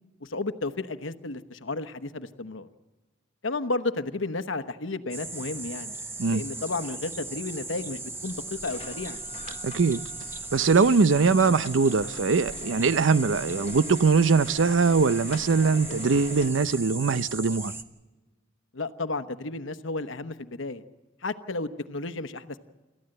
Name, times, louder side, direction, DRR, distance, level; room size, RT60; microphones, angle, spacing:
voice 1, 0.2-2.7 3.4-5.9 6.3-9.2 18.7-20.8 21.2-22.6, left 3 dB, 85° left, 1.1 m, -32 dB
sound 1, 5.1-17.8, right 3 dB, 15° right, 1.1 m, -38 dB
sound 2, 8.3-16.5, left 3 dB, 35° left, 1.2 m, -44 dB
voice 2, 9.6-10.0 10.5-17.7, right 4 dB, 80° right, 0.6 m, -22 dB
28.0 x 14.0 x 7.8 m
head